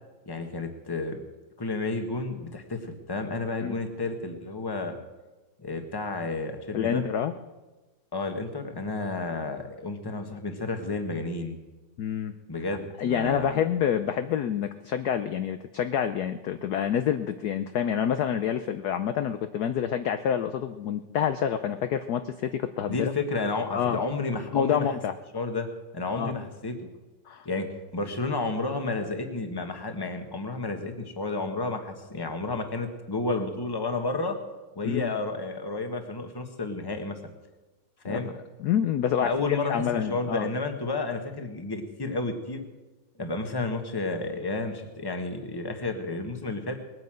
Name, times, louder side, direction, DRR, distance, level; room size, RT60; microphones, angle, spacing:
voice 1, 0.2-1.2 1.6-5.0 5.6-7.0 8.1-11.6 12.5-13.6 22.9-24.9 25.3-25.7 25.9-26.7 27.4-27.7 27.9-34.4 34.7-37.2 38.0-38.3 39.2-42.6 43.2-46.8, left 3 dB, 15° left, 6 dB, 1.2 m, -31 dB
voice 2, 6.7-7.3 12.0-12.4 13.0-23.1 23.7-24.0 24.5-25.1 26.1-26.3 27.3-27.5 34.8-35.1 38.0-38.2 38.6-40.5, left 9 dB, 65° left, 9 dB, 1.0 m, -27 dB
19.5 x 9.4 x 7.6 m, 1.2 s
omnidirectional pair, 2.2 m